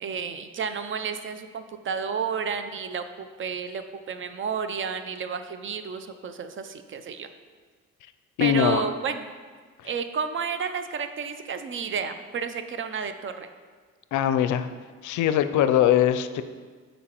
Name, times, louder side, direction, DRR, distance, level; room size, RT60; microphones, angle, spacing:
voice 1, 0.0-7.3 8.4-9.3 9.8-13.5, right 6 dB, 40° right, 9 dB, 0.5 m, -31 dB
voice 2, 8.4-8.9 14.1-14.7 15.0-16.4, left 10 dB, 80° left, 11 dB, 0.4 m, -21 dB
8.5 x 5.2 x 2.9 m, 1.5 s
cardioid pair, 90°, 30 cm